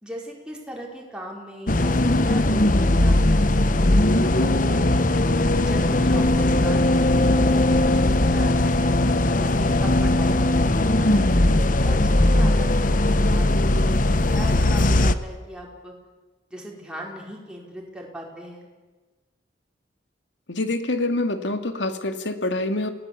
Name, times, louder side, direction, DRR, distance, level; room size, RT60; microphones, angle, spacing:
voice 1, 0.0-5.1 5.5-8.9 9.4-15.9 16.5-18.7, equal, 5° right, -2 dB, 5.0 m, -39 dB
sound 1, 1.7-15.2, left 1 dB, 45° left, 1.0 m, -19 dB
voice 2, 20.5-22.9, left 2 dB, 85° left, 7 dB, 2.4 m, -26 dB
29.0 x 18.0 x 8.6 m, 1.3 s
head